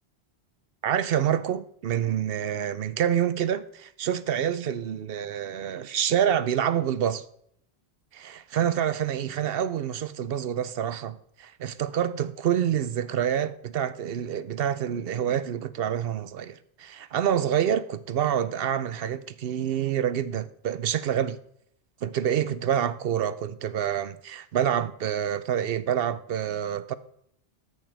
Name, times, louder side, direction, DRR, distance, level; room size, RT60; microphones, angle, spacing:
voice 1, 0.8-7.2 8.1-21.4 22.0-26.9, right 9 dB, 65° right, 0.8 m, -27 dB
13.5 x 6.4 x 3.3 m
omnidirectional pair, 1.1 m